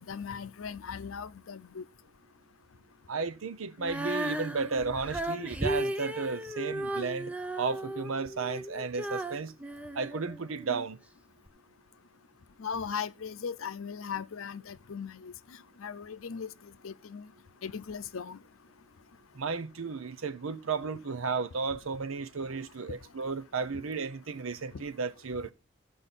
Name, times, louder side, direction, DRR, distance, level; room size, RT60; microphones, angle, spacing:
voice 1, 0.0-1.8 12.6-15.3 15.8-16.5 16.8-17.2 17.6-18.4, left 6 dB, 85° left, 0.6 m, -38 dB
voice 2, 3.1-9.5 10.0-11.0 19.4-25.5, right 4 dB, 85° right, 0.7 m, -34 dB
Female singing, 3.8-10.9 11.5-11.6, right 1 dB, 5° right, 0.4 m, -35 dB
14.5 x 5.3 x 4.1 m
head